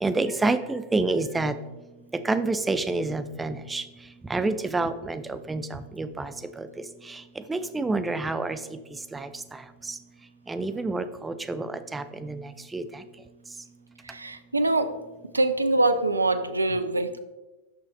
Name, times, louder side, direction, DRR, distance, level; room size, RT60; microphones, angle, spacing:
voice 1, 0.0-1.5 2.2-3.8 4.3-6.3 6.6-6.7 7.5-8.6 9.1-9.3 10.5-12.4 12.7-12.8, right 3 dB, 10° right, 10 dB, 0.4 m, -28 dB
voice 2, 14.0-15.0 15.3-17.2, right 2 dB, 80° right, 10 dB, 0.4 m, -24 dB
6.2 x 5.6 x 3.1 m, 1.1 s
figure-of-eight pair, 90°, 0 cm